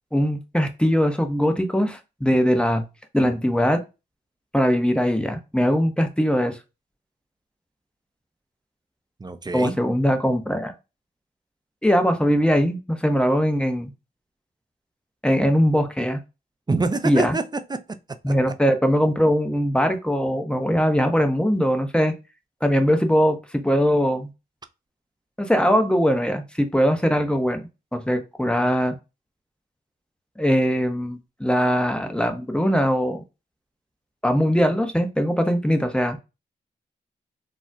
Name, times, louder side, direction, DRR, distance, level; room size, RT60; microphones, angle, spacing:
voice 1, 0.1-2.8 3.1-3.8 4.5-6.6 9.5-10.7 11.8-13.9 15.2-16.2 17.0-17.4 18.2-22.1 22.6-24.3 25.4-28.9 30.4-33.2 34.2-36.2, equal, 5° left, 0.8 m, -21 dB
voice 2, 9.2-9.8 16.7-17.8 18.3-18.4, right 3 dB, 25° right, 0.5 m, -25 dB
4.0 x 2.1 x 2.4 m
supercardioid pair, 45°, 18 cm